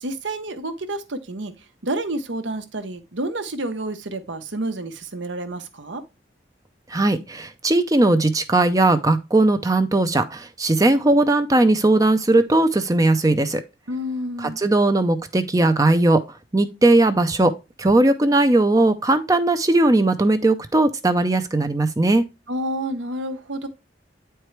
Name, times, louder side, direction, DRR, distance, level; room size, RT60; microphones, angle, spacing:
voice 1, 0.0-1.5 1.8-6.0 13.9-14.6 22.5-23.7, right 1 dB, 80° right, 1.0 m, -29 dB
voice 2, 6.9-13.6 14.4-16.2 16.5-17.5 17.8-22.3, right 2 dB, 20° right, 0.5 m, -18 dB
9.1 x 4.5 x 3.2 m
head